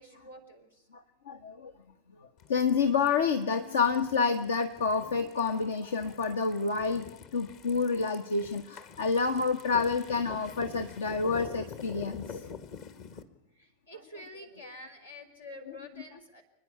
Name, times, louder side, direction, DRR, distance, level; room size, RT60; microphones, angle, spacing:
voice 1, 0.0-0.9 13.6-16.4, left 1 dB, 85° left, 2 dB, 3.9 m, -48 dB
voice 2, 0.9-1.7 2.5-12.5 15.7-15.8, left 5 dB, 65° left, 8 dB, 1.1 m, -29 dB
sound 1, 2.4-13.2, left 6 dB, 45° left, 1.6 m, -46 dB
29.0 x 10.5 x 9.8 m, 0.82 s
figure-of-eight pair, 90°, 0 cm